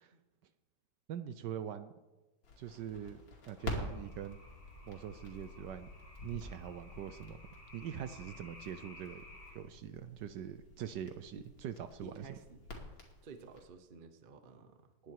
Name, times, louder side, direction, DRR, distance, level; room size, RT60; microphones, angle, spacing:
voice 1, 1.1-1.9 2.6-3.2 3.5-4.4 4.9-5.9 6.2-7.4 7.7-9.2 9.5-12.4, right 9 dB, 70° right, 11 dB, 1.2 m, -43 dB
Crackle, 2.4-13.6, left 2 dB, 80° left, 3.1 m, -49 dB
sound 1, 3.6-9.6, left 2 dB, 35° left, 4.5 m, -52 dB
voice 2, 12.0-12.6 13.2-15.1, right 4 dB, 35° right, 8 dB, 0.9 m, -53 dB
20.0 x 9.1 x 4.7 m, 1.1 s
omnidirectional pair, 2.1 m